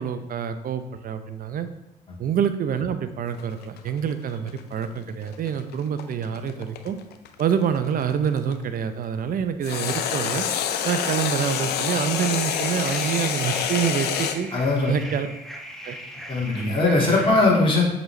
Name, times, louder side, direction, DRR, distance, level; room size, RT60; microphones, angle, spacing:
voice 1, 0.0-1.7 2.2-7.0 7.4-10.4 10.8-14.5 14.9-15.3 15.8-16.0, right 8 dB, 55° right, 10 dB, 0.6 m, -26 dB
sound 1, 3.3-8.5 9.6-14.4, left 8 dB, 70° left, 0.6 m, -27 dB
sound 2, 12.2-17.3, equal, ahead, 1.1 m, -39 dB
voice 2, 14.5-15.0 16.3-17.8, left 3 dB, 30° left, -4 dB, 2.0 m, -20 dB
7.7 x 4.0 x 3.2 m, 0.93 s
supercardioid pair, 60°, 17 cm